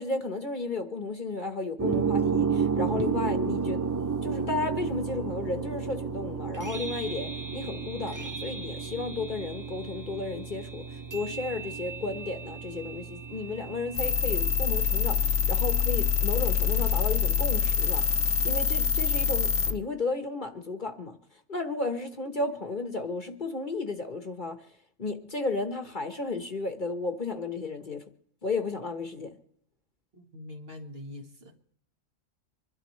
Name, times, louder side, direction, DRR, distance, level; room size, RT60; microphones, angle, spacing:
voice 1, 0.0-3.8 4.2-18.1 18.4-21.2 21.5-24.6 25.0-28.0 28.4-29.4, left 3 dB, 40° left, 1.2 m, -33 dB
sound 1, 1.8-18.4, right 5 dB, 30° right, 0.3 m, -33 dB
sound 2, 14.0-19.7, left 6 dB, 65° left, 1.2 m, -25 dB
voice 2, 30.1-31.8, left 1 dB, 45° right, 1.7 m, -44 dB
25.5 x 12.0 x 3.1 m
omnidirectional pair, 1.4 m